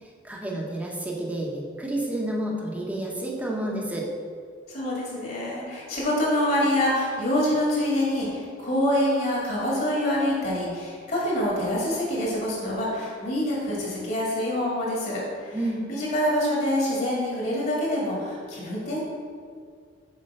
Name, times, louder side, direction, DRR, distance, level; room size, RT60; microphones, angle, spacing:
voice 1, 0.0-4.1 15.5-15.8, right 1 dB, 10° right, -2 dB, 1.1 m, -30 dB
voice 2, 4.7-15.6 15.9-19.0, left 1 dB, 50° left, -5 dB, 2.1 m, -26 dB
6.6 x 5.3 x 5.5 m, 2.1 s
head